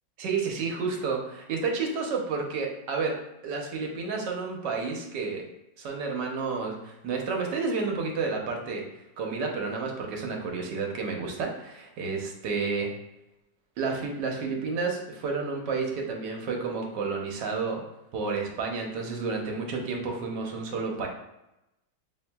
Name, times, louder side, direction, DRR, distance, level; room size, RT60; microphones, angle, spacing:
voice 1, 0.2-5.5 5.8-8.9 9.2-12.9 13.8-17.8 18.1-21.1, right 4 dB, 70° right, 1 dB, 1.3 m, -31 dB
5.8 x 2.6 x 2.2 m, 0.90 s
omnidirectional pair, 2.0 m